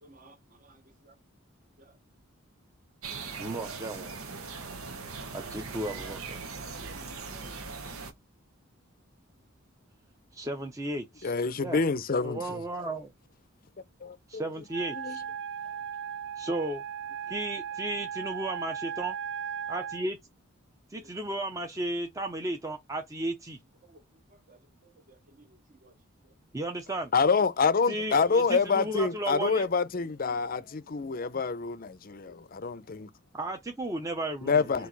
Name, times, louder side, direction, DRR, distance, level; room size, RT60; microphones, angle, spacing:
voice 1, 0.0-0.8 1.8-2.0 6.5-7.8 21.0-21.1 23.8-24.0 24.3-25.9 26.2-26.3, right 2 dB, 40° right, 0.9 m, -57 dB
sound 1, 3.0-8.1, right 4 dB, 85° right, 1.1 m, -40 dB
voice 2, 3.4-4.1 5.3-6.4 10.3-11.8 12.2-13.1 14.3-15.2 16.4-16.8 17.3-19.2 19.7-20.1 20.9-23.6 26.5-27.1 27.9-29.7 33.3-34.9, right 1 dB, 15° right, 0.6 m, -34 dB
voice 3, 11.2-12.6 14.0-14.4 15.0-15.2 27.1-33.1 34.4-34.9, left 5 dB, 45° left, 0.5 m, -27 dB
Wind instrument woodwind instrument, 14.7-20.1, right 8 dB, 55° right, 0.5 m, -37 dB
4.6 x 2.5 x 3.9 m
head